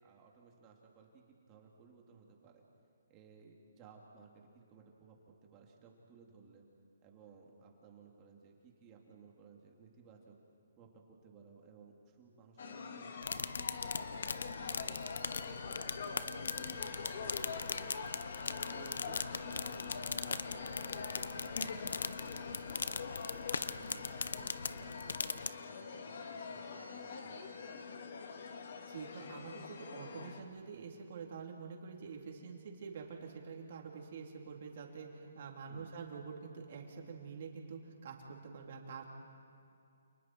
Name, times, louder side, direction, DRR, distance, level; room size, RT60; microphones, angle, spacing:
voice 1, 0.0-2.6 3.1-6.7 7.0-10.4 10.8-14.3 14.7-18.0 18.7-23.1 23.7-28.1 35.7-36.0, right 5 dB, 20° right, 0 dB, 2.7 m, -59 dB
sound 1, 12.6-30.4, left 5 dB, 55° left, 2.3 m, -44 dB
sound 2, 13.2-25.5, left 5 dB, 80° left, 0.8 m, -40 dB
voice 2, 28.9-39.0, right 5 dB, 50° right, 0 dB, 3.7 m, -47 dB
29.5 x 29.0 x 4.6 m, 2.4 s
hypercardioid pair, 165°, 0 cm